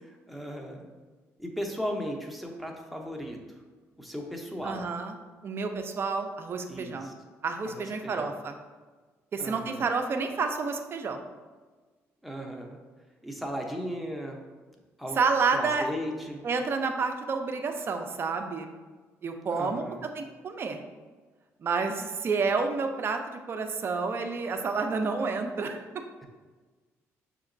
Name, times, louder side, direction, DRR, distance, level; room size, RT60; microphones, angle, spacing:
voice 1, 0.0-0.9 1.4-3.4 4.0-4.8 6.7-7.1 7.7-8.3 9.4-9.8 12.2-12.8 13.2-14.4 15.0-15.2 15.5-16.4 19.5-20.1, equal, ahead, 1 dB, 0.7 m, -36 dB
voice 2, 4.6-5.1 5.4-7.1 7.4-8.5 9.3-11.2 15.2-15.9 16.4-18.8 19.2-19.8 20.2-20.8 21.6-25.8, right 4 dB, 45° right, 5 dB, 0.5 m, -29 dB
6.2 x 2.9 x 2.5 m, 1.4 s
cardioid pair, 95°, 6 cm